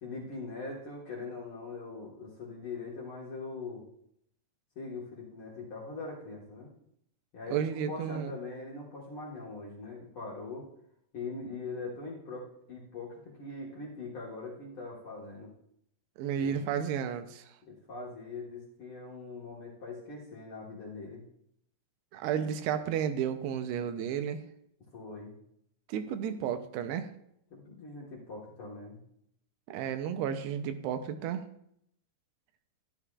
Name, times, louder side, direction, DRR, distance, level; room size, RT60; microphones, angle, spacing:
voice 1, 0.0-3.8 4.7-6.7 7.3-10.6 11.1-15.5 16.4-16.7 17.6-21.2 24.9-25.3 27.5-29.0, left 3 dB, 55° left, -4 dB, 1.6 m, -42 dB
voice 2, 7.5-8.3 16.2-17.4 22.1-24.4 25.9-27.1 29.7-31.4, right 8 dB, 80° right, 8 dB, 2.8 m, -32 dB
12.5 x 11.5 x 2.4 m, 0.74 s
omnidirectional pair, 4.8 m